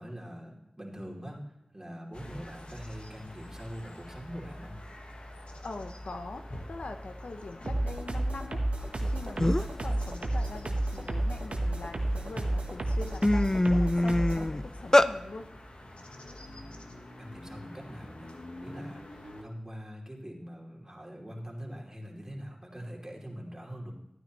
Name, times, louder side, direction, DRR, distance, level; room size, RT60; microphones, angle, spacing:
voice 1, 0.0-1.4 1.7-4.8 17.2-18.3 18.6-23.9, equal, 25° right, -2 dB, 2.9 m, -43 dB
sound 1, 2.1-19.4, left 1 dB, 60° left, 1.2 m, -47 dB
voice 2, 5.6-8.6 9.0-15.5, left 3 dB, 90° left, 7 dB, 0.7 m, -43 dB
sound 2, 7.7-14.5, right 1 dB, 75° right, 1.1 m, -31 dB
sound 3, 9.0-9.1 9.4-9.8 10.3-11.8 12.4-12.6 12.9-15.1, left 1 dB, 25° left, 0.4 m, -25 dB
13.0 x 9.4 x 3.1 m, 0.88 s
cardioid pair, 40°, 2 cm